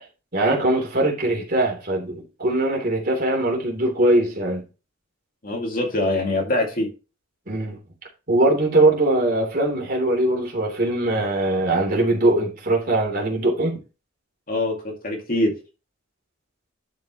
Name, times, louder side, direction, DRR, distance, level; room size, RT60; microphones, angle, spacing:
voice 1, 0.3-4.6 7.5-7.8 8.3-13.8, right 1 dB, 45° right, 3.2 m, -21 dB
voice 2, 5.4-6.9 14.5-15.5, left 2 dB, 45° left, 2.2 m, -23 dB
11.0 x 5.5 x 3.0 m
head